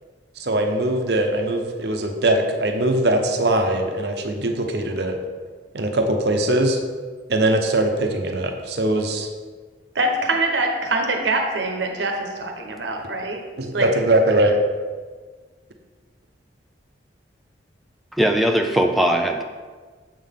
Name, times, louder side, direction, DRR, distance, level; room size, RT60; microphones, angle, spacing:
voice 1, 0.4-5.2 5.7-6.8 7.3-9.3 13.6-14.6, right 1 dB, 65° right, 4 dB, 0.8 m, -21 dB
voice 2, 9.9-13.4 13.7-13.9, right 2 dB, 85° right, 2 dB, 1.0 m, -24 dB
voice 3, 18.1-19.4, right 1 dB, ahead, 3 dB, 0.3 m, -19 dB
7.4 x 5.7 x 3.6 m, 1.5 s
head